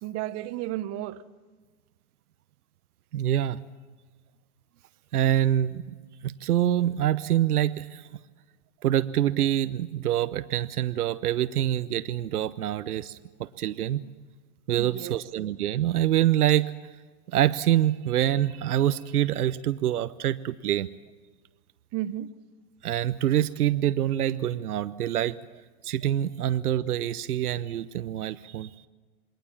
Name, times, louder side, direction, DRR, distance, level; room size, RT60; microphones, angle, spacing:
voice 1, 0.0-1.2 14.8-15.2 21.9-22.3, right 13 dB, 35° right, 1.1 m, -33 dB
voice 2, 3.1-3.6 5.1-5.8 6.2-8.1 8.8-14.1 14.7-16.7 17.3-20.9 22.8-25.4 25.8-28.7, right 12 dB, 80° right, 0.9 m, -25 dB
28.0 x 22.0 x 7.3 m
hypercardioid pair, 120°, 44 cm